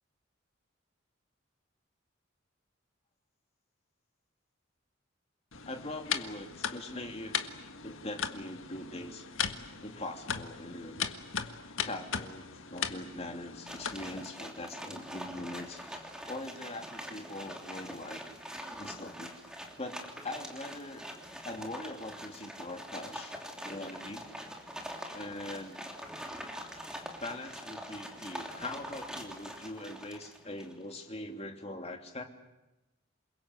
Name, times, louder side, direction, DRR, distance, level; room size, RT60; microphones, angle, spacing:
sound 1, 5.5-14.3, left 7 dB, 80° left, 1.7 m, -38 dB
voice 1, 5.6-7.5 7.8-9.2 9.8-11.1 11.8-18.2 18.8-19.3 19.8-20.0 20.2-21.1 21.4-23.3 23.6-24.2 25.1-25.8 27.2-32.2, left 1 dB, 30° left, 3 dB, 2.9 m, -42 dB
sound 2, 13.6-30.8, equal, 5° right, 3.1 m, -44 dB
28.5 x 22.0 x 8.1 m, 0.99 s
head